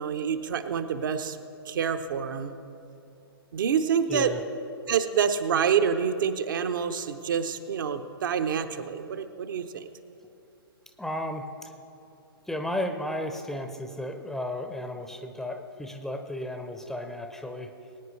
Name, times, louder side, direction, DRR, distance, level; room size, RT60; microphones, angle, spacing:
voice 1, 0.0-1.4 1.7-2.6 3.5-4.3 4.9-9.9, right 7 dB, 55° right, 8 dB, 0.8 m, -27 dB
voice 2, 4.1-4.4 11.0-11.7 12.5-17.7, left 1 dB, 5° left, 5 dB, 0.6 m, -34 dB
22.0 x 9.3 x 3.2 m, 2.7 s
figure-of-eight pair, 120°, 13 cm